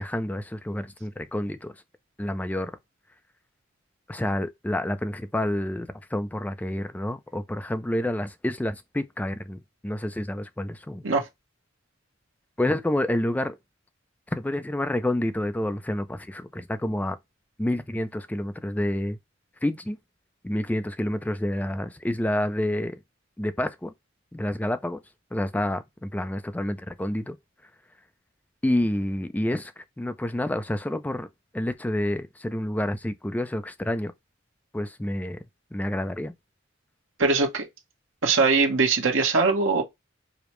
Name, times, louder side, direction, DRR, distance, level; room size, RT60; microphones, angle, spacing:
voice 1, 0.0-1.7 2.2-2.7 4.1-11.0 12.6-13.6 14.3-17.2 17.6-19.2 19.6-20.0 20.4-23.0 23.4-23.9 24.3-25.0 25.3-27.4 28.6-31.3 31.5-34.1 34.7-35.4 35.7-36.3, left 1 dB, 10° left, 0.3 m, -28 dB
voice 2, 37.2-37.7 38.2-39.8, right 4 dB, 75° right, 1.1 m, -21 dB
4.9 x 2.1 x 3.0 m
head